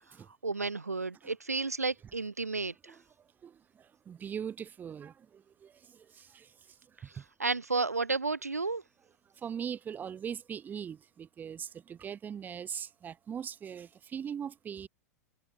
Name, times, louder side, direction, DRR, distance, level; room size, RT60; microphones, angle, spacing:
voice 1, 0.4-2.9 7.4-8.8, right 3 dB, 90° right, 0.7 m, -32 dB
voice 2, 3.4-6.5 7.1-7.2 9.4-14.9, right 8 dB, 20° right, 2.1 m, -41 dB
figure-of-eight pair, 95°, 8 cm